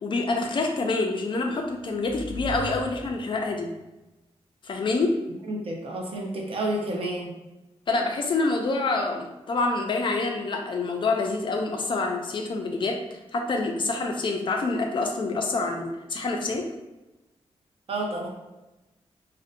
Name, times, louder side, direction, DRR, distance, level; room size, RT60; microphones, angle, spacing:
voice 1, 0.0-3.7 4.6-5.1 7.9-13.0 13.3-16.6, left 3 dB, 50° left, 2 dB, 0.3 m, -27 dB
sound 1, 1.4-3.7, equal, 25° right, 0.7 m, -39 dB
voice 2, 5.4-7.3 17.9-18.3, right 1 dB, 55° right, -1 dB, 0.5 m, -30 dB
2.6 x 2.1 x 2.5 m, 1.0 s
wide cardioid pair, 130°, 11 cm